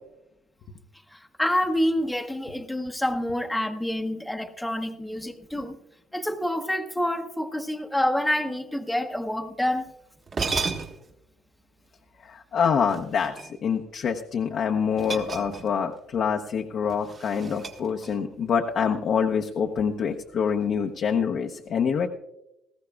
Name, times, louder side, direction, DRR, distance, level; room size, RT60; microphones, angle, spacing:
voice 1, 1.1-5.8 6.1-9.9, left 1 dB, 5° left, 5 dB, 0.9 m, -27 dB
sound 1, 9.9-10.0 10.3-11.2 12.9-13.8 15.0-15.9 16.2-16.4 16.9-18.3, right 4 dB, 40° right, 1.6 m, -33 dB
voice 2, 12.3-13.3 13.6-22.1, left 6 dB, 55° left, 2 dB, 0.8 m, -26 dB
18.5 x 14.5 x 2.3 m, 0.90 s
supercardioid pair, 80°, 0 cm